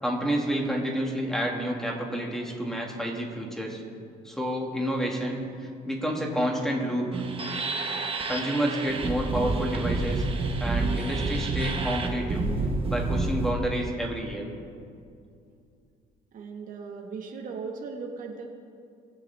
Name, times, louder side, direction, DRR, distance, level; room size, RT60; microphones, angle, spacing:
voice 1, 0.0-3.8 4.2-7.2 8.3-10.2 10.6-12.4 12.9-14.5, right 1 dB, 5° left, 0 dB, 2.0 m, -29 dB
sound 1, 7.1-13.5, right 3 dB, 35° right, 1.4 m, -29 dB
voice 2, 16.3-18.4, right 5 dB, 50° right, 2 dB, 1.5 m, -37 dB
20.5 x 7.1 x 3.5 m, 2.4 s
cardioid pair, 110°, 17 cm